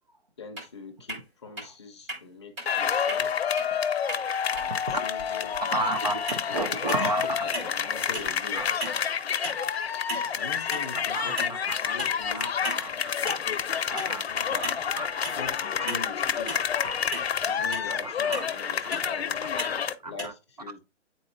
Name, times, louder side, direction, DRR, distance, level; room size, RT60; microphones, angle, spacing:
voice 1, 0.4-3.4 4.5-5.7 6.5-7.1 7.4-8.6 9.9-10.1 10.3-14.7 15.3-16.7 17.4-20.8, left 4 dB, 25° left, 0.6 m, -43 dB
sound 1, 0.6-0.7 1.1-1.2 1.6-1.7 2.1-2.2 2.6-2.7 3.1-3.2 3.6-3.7 4.1-4.2 4.6-4.7 6.3-6.5 6.9-7.2 7.5-7.8 8.1-8.4 8.8-9.0 9.4-9.6 10.1-10.3 10.7-10.9 11.4-11.6 12.0-12.2 12.6-12.8 13.3-13.4 14.0-14.1 14.6-14.8 15.2-15.5 15.9-16.0 16.5-16.7 17.1-17.3 17.7-17.9 18.3-18.5 18.9-19.1 19.6-19.8 20.2-20.3, right 1 dB, 15° right, 0.9 m, -35 dB
sound 2, 2.7-19.9, left 7 dB, 60° left, 0.7 m, -29 dB
voice 2, 4.7-5.0 5.7-7.7 8.5-8.7 10.9-11.8 12.3-13.4 13.9-14.2 14.5-14.6 15.0-15.1 15.8-15.9 16.5-17.0 18.0-18.5 19.4-20.3, right 2 dB, 35° right, 0.5 m, -33 dB
9.3 x 4.1 x 2.5 m
hypercardioid pair, 160°, 35 cm